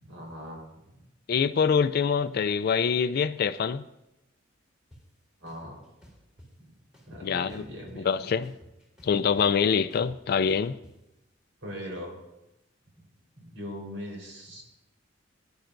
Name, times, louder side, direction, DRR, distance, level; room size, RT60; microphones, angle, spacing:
voice 1, 0.0-0.6 0.9-1.0 5.4-5.8 6.6-6.7 7.1-8.4 11.6-12.2 13.4-14.6, equal, 80° right, -2 dB, 4.0 m, -40 dB
voice 2, 1.3-3.8 7.2-7.6 8.0-8.5 9.0-10.7, left 6 dB, 50° left, 11 dB, 0.3 m, -25 dB
sound 1, 4.9-5.0 5.5-6.5 6.9-8.1 8.4-10.9, equal, 5° right, 3.0 m, -53 dB
18.0 x 10.5 x 2.6 m, 0.92 s
head